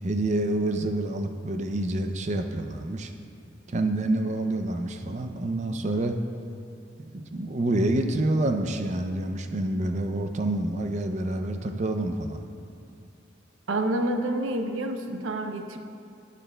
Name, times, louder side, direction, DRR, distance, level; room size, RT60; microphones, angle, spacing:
voice 1, 0.0-3.1 3.7-6.2 7.0-12.4, right 1 dB, 35° right, 6 dB, 0.5 m, -27 dB
voice 2, 13.7-15.8, right 1 dB, 90° right, 6 dB, 0.6 m, -28 dB
11.0 x 9.8 x 2.3 m, 2.4 s
head